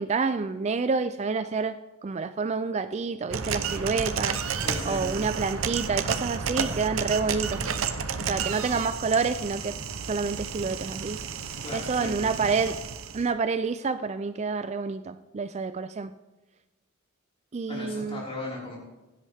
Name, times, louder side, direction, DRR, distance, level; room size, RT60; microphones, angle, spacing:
voice 1, 0.0-1.8 2.0-4.4 4.8-7.7 8.2-9.8 10.0-11.2 11.7-12.8 13.1-16.1 17.5-18.3, right 4 dB, 35° right, 11 dB, 0.4 m, -28 dB
sound 1, 3.3-13.3, right 6 dB, 90° right, 0.9 m, -31 dB
voice 2, 4.6-5.0 11.6-12.4 17.7-18.8, left 2 dB, 30° left, -5 dB, 4.9 m, -37 dB
16.0 x 11.5 x 3.5 m, 1.1 s
head